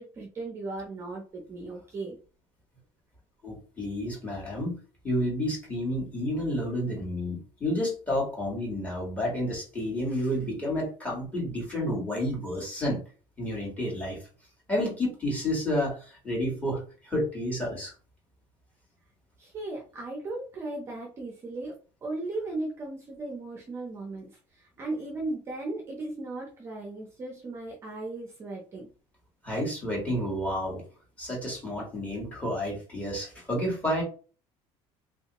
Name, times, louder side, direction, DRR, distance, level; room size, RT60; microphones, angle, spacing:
voice 1, 0.0-2.2 19.4-21.8 22.0-28.9, right 2 dB, 20° right, 0 dB, 0.6 m, -36 dB
voice 2, 3.4-4.8 5.0-13.0 13.4-14.2 14.7-17.9 29.4-30.8 31.2-34.0, left 1 dB, 10° left, -3 dB, 1.4 m, -30 dB
3.5 x 2.7 x 2.9 m, 0.37 s
cardioid pair, 175°, 12 cm